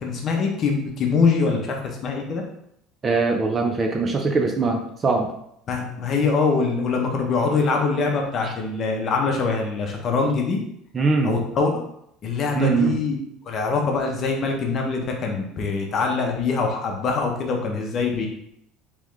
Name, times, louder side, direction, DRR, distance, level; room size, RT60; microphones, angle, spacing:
voice 1, 0.0-1.8 2.0-2.4 5.7-10.6 11.2-11.7 12.2-13.1 13.5-18.3, left 4 dB, 35° left, 1 dB, 0.8 m, -23 dB
voice 2, 3.0-5.3 8.4-8.5 10.9-11.3 12.6-13.0, right 4 dB, 20° right, 3 dB, 0.4 m, -22 dB
3.6 x 3.0 x 3.2 m, 0.74 s
cardioid pair, 145°, 0 cm